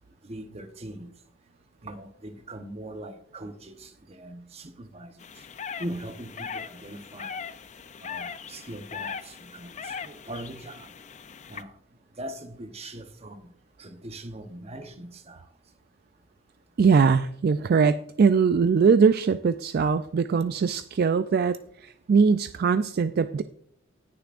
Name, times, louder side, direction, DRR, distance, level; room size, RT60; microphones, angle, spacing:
voice 1, 0.2-1.1 1.8-5.1 5.8-7.4 8.0-10.9 11.5-11.7 12.2-13.5 13.8-15.5, right 1 dB, 30° right, 0.9 m, -41 dB
sound 1, 5.2-11.6, left 6 dB, 35° left, 0.4 m, -39 dB
voice 2, 16.8-23.4, right 5 dB, 50° right, 0.3 m, -21 dB
18.5 x 6.9 x 2.5 m
head